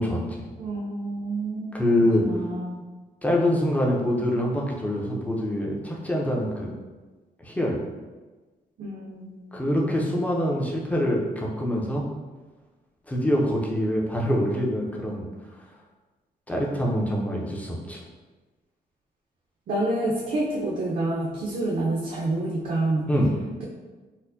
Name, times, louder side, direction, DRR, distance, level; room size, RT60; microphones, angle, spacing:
voice 1, 0.0-0.4 1.7-2.2 3.2-6.7 7.4-7.8 9.5-12.0 13.1-15.2 16.5-18.0 23.1-23.3, equal, 10° left, -2 dB, 0.5 m, -25 dB
voice 2, 0.6-1.8 2.2-2.8 8.8-10.0 19.7-23.1, right 2 dB, 55° right, -4 dB, 0.6 m, -28 dB
4.2 x 2.1 x 2.6 m, 1.3 s
cardioid pair, 130°, 16 cm